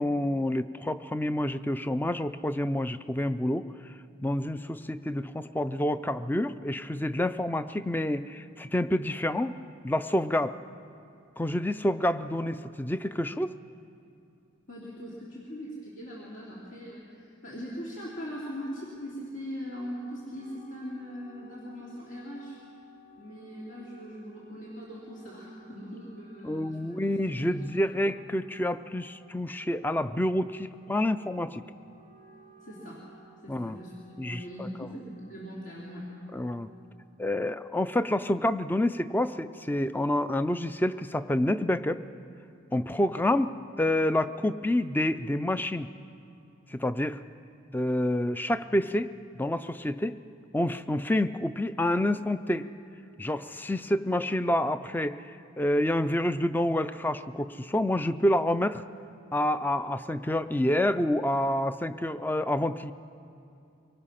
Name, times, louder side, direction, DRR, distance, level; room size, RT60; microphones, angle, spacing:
voice 1, 0.0-3.7 4.2-9.5 9.8-10.6 11.4-13.5 26.4-31.6 33.5-33.8 34.2-34.7 36.3-36.7 37.2-42.0 42.7-45.9 46.7-47.2 47.7-50.2 50.5-52.6 53.2-58.8 59.3-62.9, left 1 dB, 10° left, 13 dB, 0.4 m, -28 dB
voice 2, 14.7-22.6 23.2-27.7 32.6-33.1 33.4-33.9 34.2-36.1, equal, 65° left, -6 dB, 3.1 m, -41 dB
Wind instrument woodwind instrument, 19.6-36.9, right 2 dB, 40° left, 5.4 m, -57 dB
24.5 x 18.5 x 5.7 m, 2.6 s
head